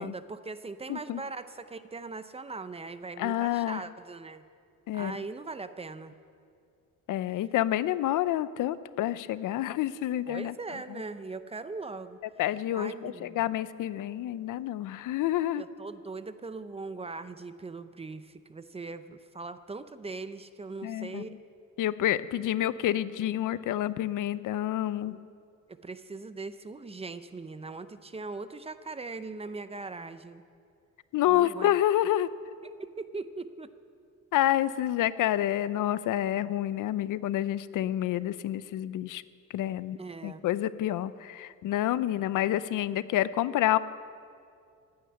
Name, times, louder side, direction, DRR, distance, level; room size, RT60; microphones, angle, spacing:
voice 1, 0.0-4.4 4.9-6.1 10.3-12.2 12.7-13.4 15.6-21.4 25.1-25.3 25.7-30.4 31.3-31.8 32.8-33.7 40.0-40.4, right 3 dB, 20° right, 12 dB, 0.6 m, -40 dB
voice 2, 0.9-1.2 3.2-3.8 4.9-5.2 7.1-10.5 12.4-15.6 20.8-21.2 21.8-25.2 31.1-32.3 34.3-39.2 39.5-40.0 40.2-43.8, left 13 dB, 70° left, 16 dB, 0.6 m, -28 dB
15.5 x 9.5 x 9.6 m, 2.3 s
cardioid pair, 130°, 32 cm